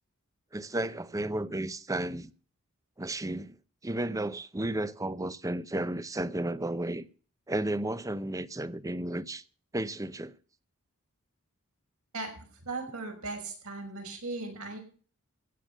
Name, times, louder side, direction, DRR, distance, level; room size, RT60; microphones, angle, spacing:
voice 1, 0.5-2.3 3.0-3.6 3.8-7.1 7.5-9.4 9.7-10.3, right 1 dB, 15° right, 0.7 m, -33 dB
voice 2, 12.1-14.8, right 3 dB, 75° right, 5.8 m, -38 dB
15.5 x 8.5 x 6.6 m
head